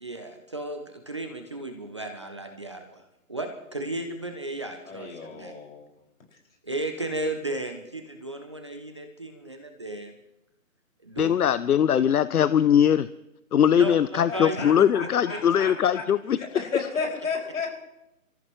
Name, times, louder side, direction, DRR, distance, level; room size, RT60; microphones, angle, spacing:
voice 1, 0.0-3.0 3.3-5.5 6.6-10.1 11.0-11.4 13.7-14.7 15.0-15.6, right 2 dB, 20° right, 5 dB, 0.6 m, -34 dB
voice 2, 4.9-5.9 14.3-16.0 16.4-17.7, left 5 dB, 65° left, 0 dB, 5.7 m, -33 dB
voice 3, 11.2-13.1 13.5-16.4, left 9 dB, 80° left, 16 dB, 0.6 m, -21 dB
27.5 x 14.0 x 3.1 m, 0.90 s
figure-of-eight pair, 155°, 44 cm